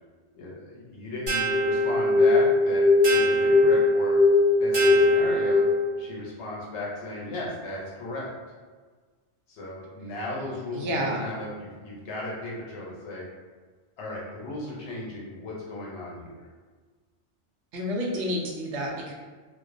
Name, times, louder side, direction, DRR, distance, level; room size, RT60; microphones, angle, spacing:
voice 1, 0.3-4.2 4.6-5.6 6.0-8.3 9.5-13.2 14.0-16.5, left 2 dB, 75° left, -4 dB, 1.0 m, -36 dB
sound 1, 1.3-6.0, left 2 dB, 40° right, 0.8 m, -20 dB
voice 2, 10.7-11.3 17.7-19.1, equal, 85° right, -2 dB, 0.9 m, -29 dB
2.4 x 2.2 x 2.4 m, 1.4 s
omnidirectional pair, 1.2 m